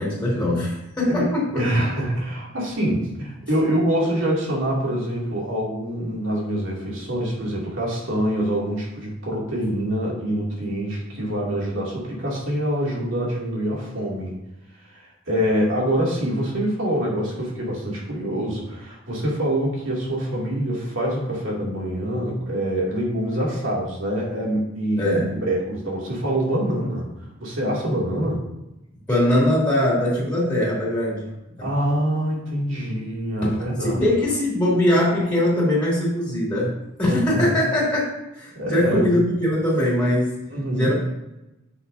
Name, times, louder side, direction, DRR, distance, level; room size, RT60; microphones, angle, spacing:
voice 1, 0.0-1.6 25.0-25.3 29.1-31.3 33.8-36.7 37.0-40.3 40.7-40.9, left 1 dB, 5° left, -6 dB, 2.7 m, -21 dB
voice 2, 1.5-14.4 14.9-27.1 27.4-28.4 31.6-34.1 37.1-37.6 38.5-39.1 40.5-40.9, right 1 dB, 70° right, -4 dB, 2.8 m, -25 dB
9.7 x 6.2 x 2.8 m, 0.94 s
head